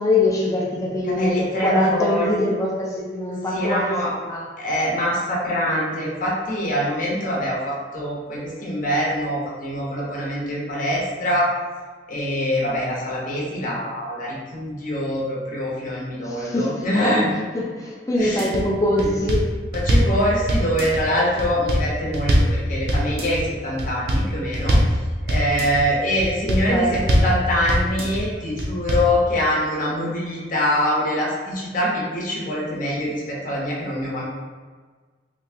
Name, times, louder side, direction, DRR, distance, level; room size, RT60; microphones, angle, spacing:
voice 1, 0.0-4.4 5.9-6.1 16.3-17.1 17.5-19.5 26.5-27.2, left 1 dB, 20° left, -3 dB, 0.6 m, -23 dB
voice 2, 1.0-2.3 3.5-4.1 4.6-11.5 12.1-17.3 18.1-18.5 19.0-19.2 19.7-24.8 25.3-34.2, equal, 50° left, -5 dB, 0.9 m, -24 dB
sound 1, 18.2-18.6 19.0-20.1 20.5-21.0 21.4-22.5 22.9-23.4 23.8-24.2 24.5-24.9 25.3-25.8 26.2-26.6 26.9-27.3 27.7-28.2 28.6-29.1, equal, 60° right, 0.6 m, -20 dB
2.9 x 2.7 x 3.4 m, 1.4 s
head